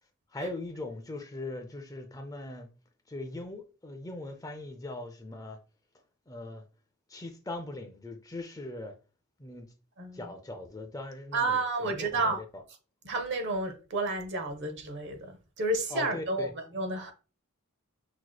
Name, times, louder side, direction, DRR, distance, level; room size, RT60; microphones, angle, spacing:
voice 1, 0.3-2.7 3.1-5.6 6.3-6.6 7.1-9.0 9.4-9.7 10.1-12.6 15.9-16.5, left 2 dB, 15° left, 0.5 m, -40 dB
voice 2, 10.0-10.3 11.3-12.4 13.0-17.1, right 2 dB, 55° right, 0.9 m, -31 dB
6.0 x 3.0 x 2.3 m
head